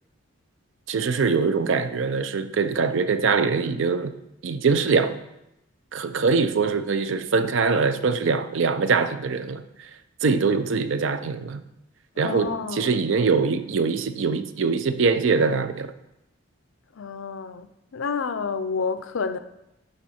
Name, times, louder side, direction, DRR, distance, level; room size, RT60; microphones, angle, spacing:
voice 1, 0.9-4.1 4.4-5.2 5.9-9.6 10.2-11.6 12.2-15.9, right 4 dB, 65° right, 0.5 m, -23 dB
voice 2, 12.2-13.0 17.0-17.7 17.9-19.4, left 5 dB, 75° left, 0.5 m, -29 dB
11.0 x 3.8 x 4.3 m
head